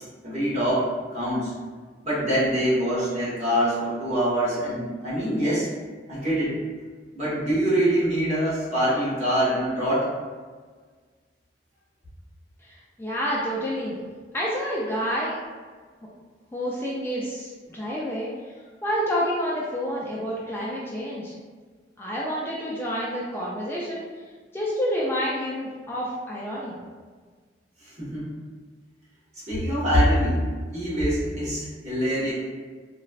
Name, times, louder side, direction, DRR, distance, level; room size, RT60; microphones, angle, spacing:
voice 1, 0.2-1.5 2.0-5.7 6.1-6.5 7.1-10.1 27.8-28.3 29.5-30.4 30.7-32.3, equal, 40° right, -9 dB, 1.2 m, -24 dB
voice 2, 12.6-14.0 14.3-15.4 16.5-18.3 18.8-21.3 22.0-24.0 24.5-26.8, equal, 15° left, -6 dB, 0.3 m, -28 dB
3.9 x 2.2 x 2.4 m, 1.5 s
head